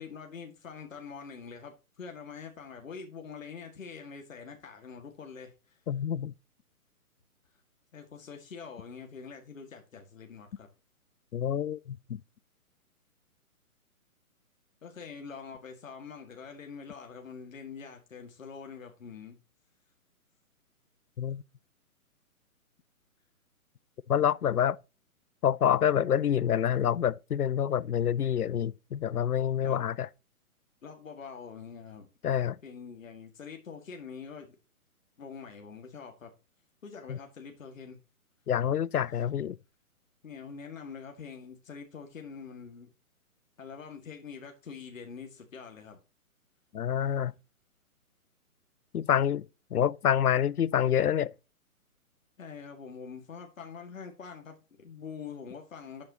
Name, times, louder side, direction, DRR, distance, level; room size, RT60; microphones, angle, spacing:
voice 1, 0.0-5.8 7.9-10.7 14.8-19.4 29.6-29.9 30.8-32.1 32.6-34.6 35.2-36.3 36.8-38.0 40.2-42.9 43.6-46.0 52.4-56.1, left 6 dB, 60° left, 2.1 m, -45 dB
voice 2, 5.9-6.3 11.3-12.2 21.2-21.4 24.1-24.8 25.4-30.1 32.2-32.6 38.5-39.6 46.7-47.3 48.9-49.4 49.7-51.3, left 9 dB, 85° left, 0.6 m, -27 dB
11.5 x 8.6 x 2.9 m
figure-of-eight pair, 135°, 44 cm